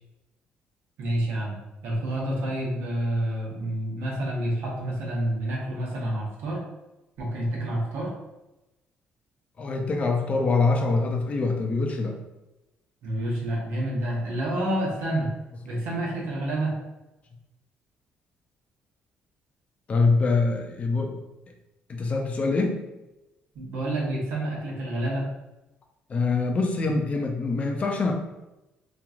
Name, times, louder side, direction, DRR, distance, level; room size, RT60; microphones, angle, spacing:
voice 1, 1.0-1.5 1.8-6.6 7.2-8.1 13.0-15.3 15.6-16.7 23.5-25.2, right 1 dB, 80° right, -3 dB, 1.0 m, -28 dB
voice 2, 9.6-12.1 19.9-21.2 21.9-22.8 26.1-28.1, left 3 dB, 35° left, 2 dB, 0.5 m, -24 dB
3.0 x 2.5 x 2.4 m, 0.98 s
cardioid pair, 120°, 4 cm